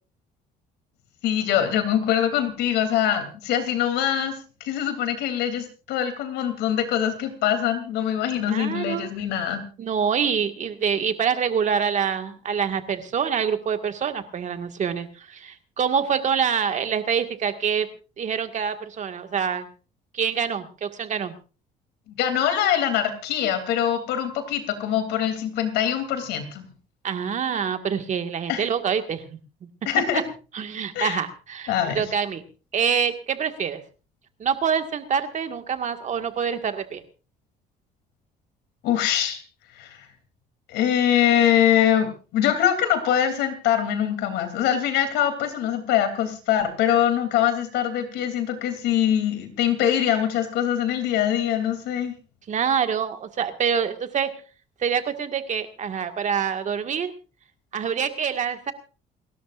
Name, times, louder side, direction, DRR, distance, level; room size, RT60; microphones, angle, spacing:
voice 1, 1.2-4.3 4.6-9.6 22.1-26.7 28.5-28.6 29.8-30.2 30.9-31.2 31.7-32.0 38.8-39.4 39.8-40.1 40.7-52.1, left 10 dB, 85° left, 7 dB, 3.1 m, -23 dB
voice 2, 8.5-9.1 9.8-17.9 18.2-19.7 20.1-21.4 27.0-29.4 30.5-32.4 32.7-33.8 34.4-37.0 52.5-54.3 54.8-57.1 57.7-58.7, right 7 dB, 45° right, 7 dB, 1.8 m, -26 dB
29.0 x 13.0 x 2.5 m, 0.35 s
cardioid pair, 110°, 17 cm